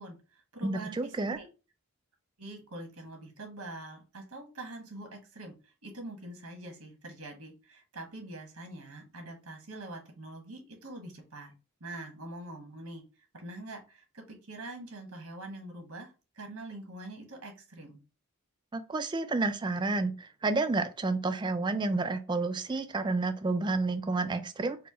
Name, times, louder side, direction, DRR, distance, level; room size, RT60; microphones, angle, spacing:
voice 1, 0.0-1.5 2.4-11.5 11.8-18.0, right 2 dB, 80° right, 1.4 m, -44 dB
voice 2, 0.6-1.4 18.7-24.9, right 3 dB, 20° right, 0.3 m, -30 dB
4.3 x 2.1 x 4.2 m
head